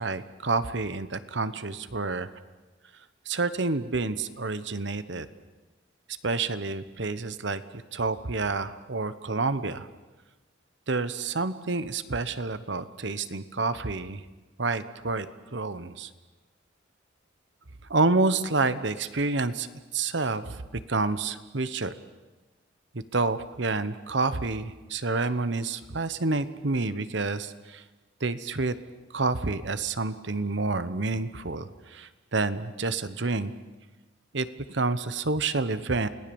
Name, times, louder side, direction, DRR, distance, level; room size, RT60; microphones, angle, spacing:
voice 1, 0.0-2.3 3.3-5.3 6.2-7.6 7.9-9.9 10.9-14.2 14.6-15.3 15.5-16.1 17.9-19.7 19.9-20.6 20.9-21.9 23.1-27.8 28.2-28.7 29.1-33.5 34.3-36.1, right 3 dB, 65° right, 13 dB, 1.1 m, -28 dB
29.0 x 18.5 x 7.1 m, 1.2 s
head